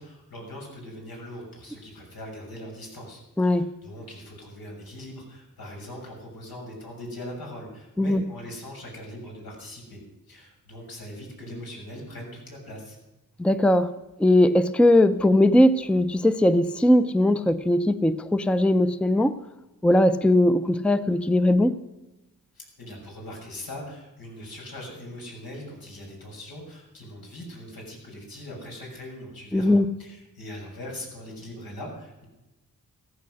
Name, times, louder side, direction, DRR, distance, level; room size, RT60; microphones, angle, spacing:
voice 1, 0.0-10.0 10.3-13.0 22.5-29.7 30.0-32.3, left 1 dB, 85° left, 6.7 m, -41 dB
voice 2, 13.4-13.9 14.2-19.3 19.8-21.8 29.5-29.9, left 1 dB, 5° left, 0.5 m, -20 dB
15.5 x 14.5 x 6.4 m
wide cardioid pair, 115°, 35 cm